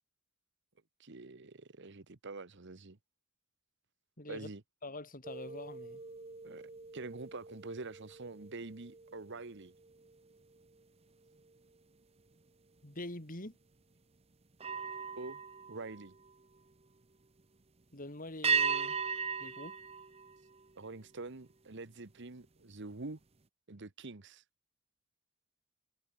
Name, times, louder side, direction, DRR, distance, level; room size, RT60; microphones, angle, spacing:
voice 1, 1.0-3.0 4.3-4.6 6.4-9.7 15.2-15.4 15.7-16.1 20.8-23.2 23.7-24.4, right 3 dB, 60° right, 1.2 m, -46 dB
voice 2, 4.2-4.5 4.8-6.0 12.8-13.6 17.9-19.0 19.4-19.8, left 2 dB, 40° left, 4.1 m, -45 dB
sound 1, 5.2-10.8 11.3-11.6 14.5-16.7 18.4-21.0, right 6 dB, 30° right, 0.9 m, -38 dB
head